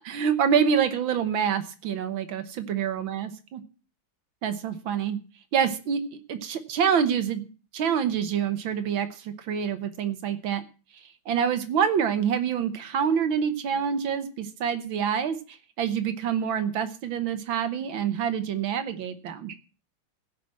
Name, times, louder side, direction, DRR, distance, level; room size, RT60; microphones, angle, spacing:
voice 1, 0.0-3.6 4.4-5.2 5.5-6.0 6.3-7.5 7.7-10.6 11.3-19.5, right 7 dB, 80° right, 10 dB, 1.9 m, -26 dB
16.0 x 6.0 x 7.5 m, 0.36 s
omnidirectional pair, 2.1 m